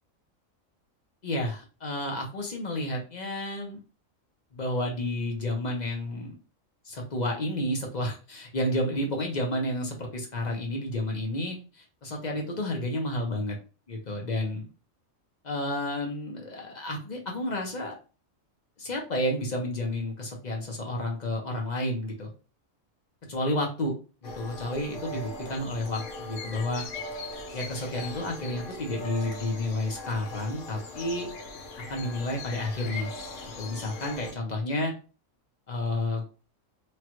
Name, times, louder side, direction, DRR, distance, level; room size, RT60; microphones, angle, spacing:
voice 1, 1.2-3.8 4.5-6.3 6.8-13.6 13.9-14.7 15.4-17.9 18.8-22.3 23.3-23.9 24.2-26.8 27.5-31.3 31.9-33.1 33.6-34.9 35.7-36.2, left 1 dB, 40° left, 0 dB, 0.7 m, -31 dB
sound 1, 24.2-34.3, left 2 dB, 65° left, 1.0 m, -40 dB
3.1 x 2.4 x 2.9 m, 0.34 s
omnidirectional pair, 1.4 m